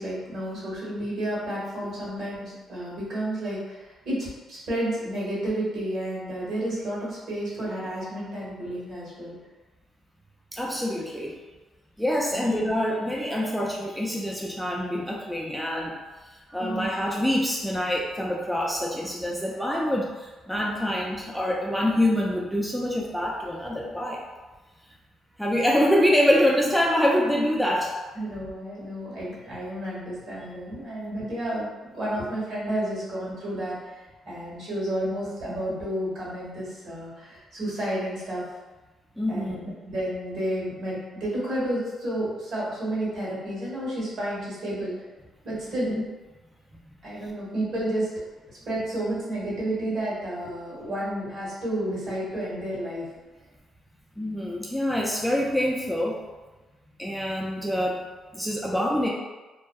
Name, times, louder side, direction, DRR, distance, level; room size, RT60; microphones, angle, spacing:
voice 1, 0.0-9.4 12.3-12.5 16.6-16.9 28.1-31.7 31.9-34.0 34.2-38.4 39.3-44.9 45.4-45.9 47.0-48.1 48.5-53.1, right 1 dB, 65° right, -7 dB, 1.3 m, -31 dB
voice 2, 10.5-11.4 12.0-15.9 16.5-24.2 25.4-28.0 39.2-39.6 45.9-46.0 54.2-56.2 57.0-58.0 58.3-59.1, equal, ahead, -3 dB, 0.3 m, -25 dB
2.6 x 2.1 x 2.3 m, 1.2 s
cardioid pair, 90°, 0 cm